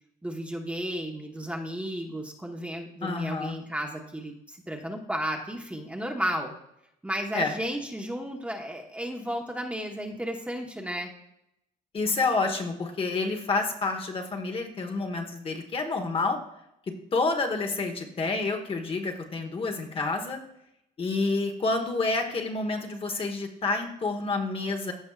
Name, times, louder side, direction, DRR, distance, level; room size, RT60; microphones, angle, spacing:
voice 1, 0.2-6.5 7.0-11.1, equal, 5° right, 1 dB, 1.1 m, -33 dB
voice 2, 3.0-3.6 7.3-7.5 11.9-16.4 16.9-20.4 21.0-24.9, left 3 dB, 35° left, 4 dB, 1.2 m, -29 dB
15.0 x 5.2 x 2.4 m, 0.80 s
cardioid pair, 110°, 17 cm